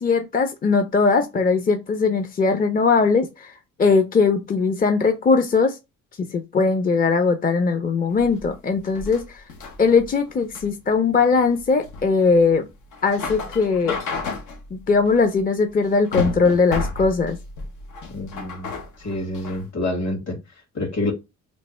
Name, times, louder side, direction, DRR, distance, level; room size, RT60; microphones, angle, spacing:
voice 1, 0.0-3.5 3.8-5.8 6.3-9.4 9.8-12.7 13.0-14.0 14.7-17.4, left 4 dB, 30° left, 0.5 m, -20 dB
sound 1, 8.1-19.7, left 4 dB, 90° left, 0.9 m, -33 dB
voice 2, 18.1-18.7 19.0-20.4 20.7-21.1, left 1 dB, 60° left, 1.8 m, -27 dB
3.2 x 2.5 x 4.2 m
cardioid pair, 90°, 30 cm